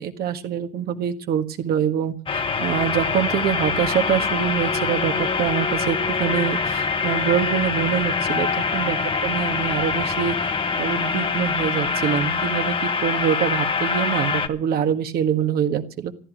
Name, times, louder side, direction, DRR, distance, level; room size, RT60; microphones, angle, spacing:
voice 1, 0.0-10.4 10.8-12.7 13.0-16.1, right 9 dB, 65° right, 7 dB, 1.7 m, -25 dB
sound 1, 2.3-14.5, left 5 dB, 30° left, 1.2 m, -24 dB
14.5 x 12.5 x 6.4 m, 0.40 s
cardioid pair, 110°, 17 cm